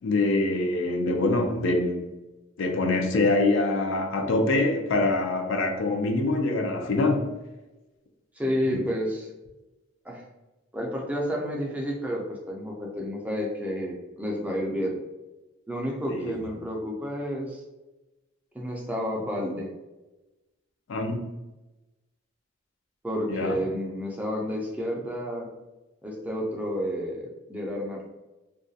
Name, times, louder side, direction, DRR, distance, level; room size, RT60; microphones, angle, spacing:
voice 1, 0.0-2.1 2.6-7.4 8.7-8.8 16.1-16.5 20.9-21.2 23.3-23.6, left 2 dB, 70° left, 0.4 m, -25 dB
voice 2, 8.3-9.3 10.0-10.2 10.7-15.0 15.7-17.6 18.5-19.7 23.0-25.5 26.0-28.1, equal, 5° right, 0.3 m, -30 dB
2.3 x 2.2 x 2.6 m
head